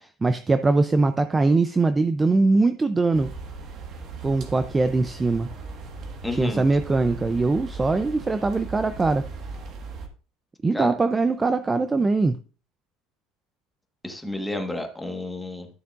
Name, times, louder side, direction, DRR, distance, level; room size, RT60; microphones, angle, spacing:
voice 1, 0.2-3.3 4.2-5.5 6.3-9.3 10.6-12.4, right 3 dB, 15° right, 11 dB, 0.4 m, -22 dB
sound 1, 3.1-10.1, right 4 dB, 45° right, 1.5 m, -38 dB
voice 2, 6.2-6.6 10.7-10.9 14.0-15.7, left 2 dB, 5° left, 4 dB, 1.3 m, -31 dB
12.0 x 6.6 x 2.4 m, 0.37 s
supercardioid pair, 130°, 0 cm